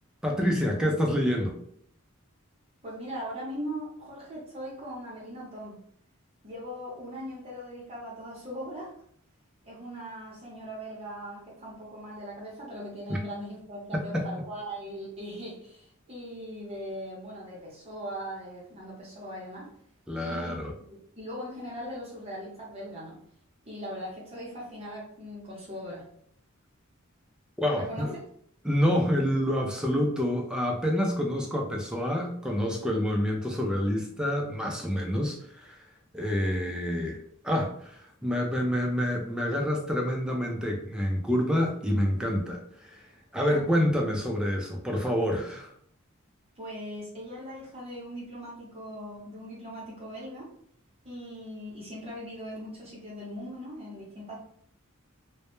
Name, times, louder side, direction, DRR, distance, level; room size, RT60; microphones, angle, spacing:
voice 1, 0.2-1.6 13.9-14.3 20.1-20.7 27.6-28.2 28.6-35.8 36.1-37.2 37.4-43.1 43.3-45.7, equal, 5° right, 0 dB, 0.3 m, -27 dB
voice 2, 2.8-5.8 6.4-8.9 9.6-19.7 20.2-20.5 20.9-23.2 23.7-26.1 27.8-28.1 43.4-43.6 46.6-50.5 51.0-54.4, equal, 30° right, -4 dB, 0.7 m, -40 dB
2.1 x 2.0 x 2.9 m, 0.64 s
head